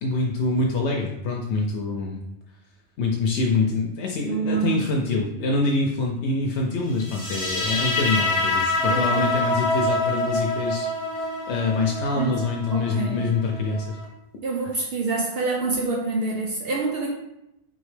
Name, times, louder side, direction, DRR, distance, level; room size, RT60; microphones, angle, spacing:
voice 1, 0.0-2.2 3.0-10.9 11.1-14.0, left 3 dB, 80° left, 0 dB, 0.8 m, -25 dB
voice 2, 4.3-4.8 8.9-9.2 12.1-12.4 12.7-13.2 14.4-17.1, right 4 dB, 65° right, -1 dB, 0.8 m, -26 dB
sound 1, 7.0-14.1, left 2 dB, 30° right, 1.6 m, -26 dB
3.8 x 3.0 x 3.2 m, 0.85 s
omnidirectional pair, 1.1 m